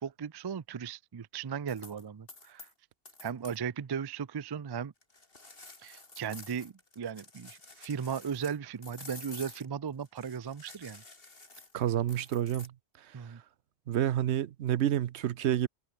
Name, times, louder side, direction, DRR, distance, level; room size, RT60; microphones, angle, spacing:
voice 1, 0.0-2.7 3.2-4.9 5.8-11.0 13.1-13.4, right 7 dB, 40° right, 0.3 m, -37 dB
sound 1, 1.7-2.0 2.3-2.7 3.1-3.6 5.0-8.6 8.8-12.7, left 3 dB, 55° left, 3.2 m, -50 dB
voice 2, 11.7-12.7 13.9-15.7, right 11 dB, 80° right, 1.0 m, -29 dB
omnidirectional pair, 1.1 m